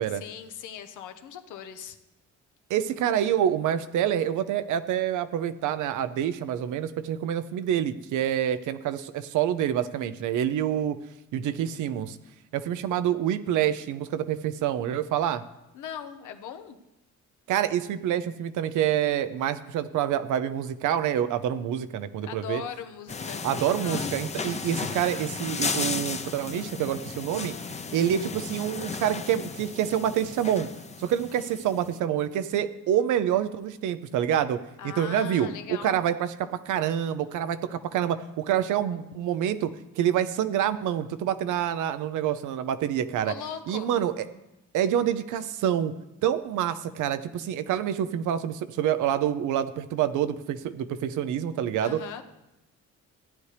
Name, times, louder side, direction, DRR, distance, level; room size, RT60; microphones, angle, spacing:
voice 1, 0.1-2.0 15.7-16.8 22.3-24.1 34.8-36.0 43.2-43.9 51.8-52.2, left 8 dB, 80° left, 7 dB, 1.0 m, -39 dB
voice 2, 2.7-11.0 11.3-12.2 12.5-15.4 17.5-22.6 23.4-27.5 27.9-30.7 31.0-36.3 36.7-39.7 40.0-43.3 43.7-44.1 44.7-45.9 46.2-52.0, right 10 dB, 80° right, 12 dB, 0.7 m, -27 dB
sound 1, 23.1-31.9, left 4 dB, 25° left, 0.7 m, -34 dB
15.5 x 9.4 x 3.3 m, 0.93 s
cardioid pair, 90°, 30 cm